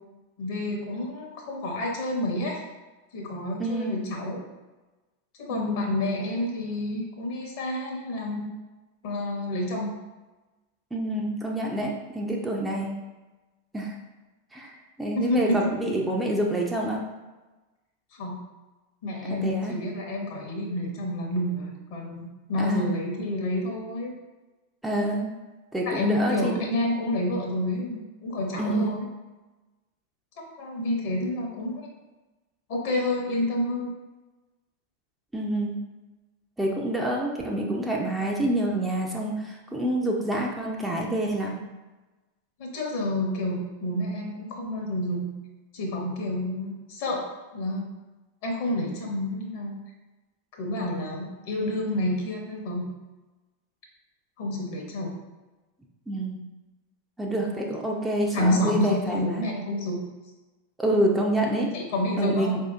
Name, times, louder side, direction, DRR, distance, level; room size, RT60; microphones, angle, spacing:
voice 1, 0.4-2.6 3.1-4.4 5.4-8.4 9.0-9.9 15.1-15.7 18.1-18.4 19.0-24.1 25.8-29.1 30.4-31.9 32.7-33.9 42.6-45.4 45.7-47.3 47.5-47.9 48.4-49.7 50.6-52.9 54.4-55.1 58.3-60.1 61.7-62.6, left 1 dB, 50° left, 0 dB, 0.8 m, -29 dB
voice 2, 3.6-4.0 5.5-5.9 10.9-12.9 13.7-14.0 14.5-14.7 15.0-17.0 19.3-19.8 22.6-22.9 24.8-25.3 25.7-26.6 28.6-29.0 35.3-35.8 36.6-41.6 56.1-56.4 57.2-59.4 60.8-61.7 62.2-62.6, right 1 dB, 5° right, -2 dB, 0.5 m, -27 dB
4.7 x 2.7 x 2.4 m, 1.1 s
figure-of-eight pair, 90°, 0 cm